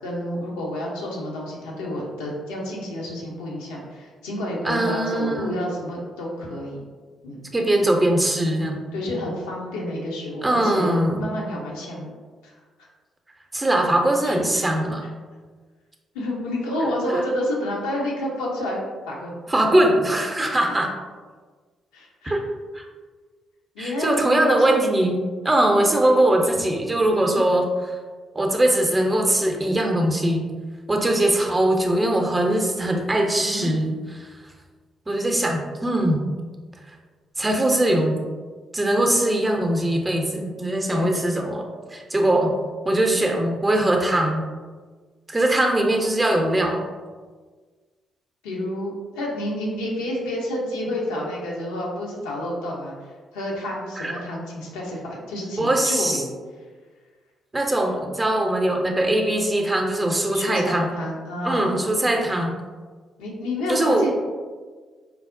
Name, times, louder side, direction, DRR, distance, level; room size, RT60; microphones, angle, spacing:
voice 1, 0.0-6.8 7.2-7.4 8.9-12.2 12.4-12.5 14.2-14.6 15.0-15.1 16.1-19.4 20.5-20.7 21.9-22.3 23.7-24.8 25.7-25.9 27.1-27.4 33.4-33.7 40.9-41.1 48.4-52.9 53.3-56.3 60.3-61.8 63.2-64.1, left 1 dB, 75° left, -3 dB, 0.6 m, -29 dB
voice 2, 4.6-5.6 7.5-8.8 10.4-11.3 13.5-15.1 17.1-17.2 19.5-20.9 22.2-22.4 22.7-22.8 23.8-27.7 28.3-30.5 30.9-33.9 34.2-34.3 35.1-36.2 37.4-38.2 38.7-41.6 41.9-42.6 42.8-44.5 45.3-46.8 54.0-54.1 55.6-56.2 57.5-60.9 61.4-62.6 63.7-64.1, right 1 dB, 25° right, 2 dB, 0.6 m, -21 dB
4.4 x 2.0 x 2.5 m, 1.5 s
hypercardioid pair, 40°, 0 cm